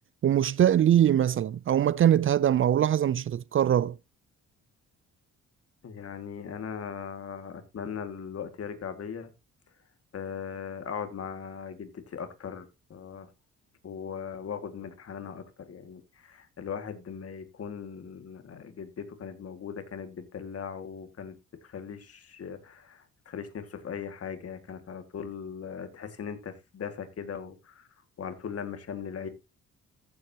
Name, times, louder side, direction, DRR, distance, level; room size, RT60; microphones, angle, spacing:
voice 1, 0.2-3.9, right 10 dB, 45° right, 0.4 m, -22 dB
voice 2, 5.8-9.3 10.1-13.3 13.8-21.4 21.6-27.9 28.2-29.3, left 7 dB, 50° left, 2.1 m, -39 dB
14.5 x 7.7 x 2.9 m
cardioid pair, 90°, 30 cm